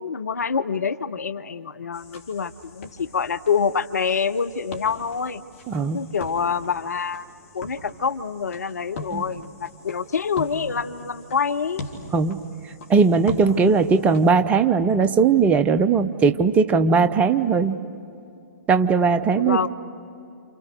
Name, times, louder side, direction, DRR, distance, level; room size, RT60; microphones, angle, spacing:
voice 1, 0.0-5.4 5.9-7.2 7.5-11.9 19.4-19.7, left 6 dB, 65° left, 12 dB, 0.8 m, -26 dB
sound 1, 1.9-14.3, left 2 dB, 50° left, 3.2 m, -41 dB
voice 2, 5.7-6.0 9.1-9.2 12.1-12.4 12.9-17.8 18.7-19.7, right 5 dB, 15° right, 11 dB, 0.6 m, -19 dB
29.0 x 29.0 x 6.6 m, 2.7 s
figure-of-eight pair, 120°, 9 cm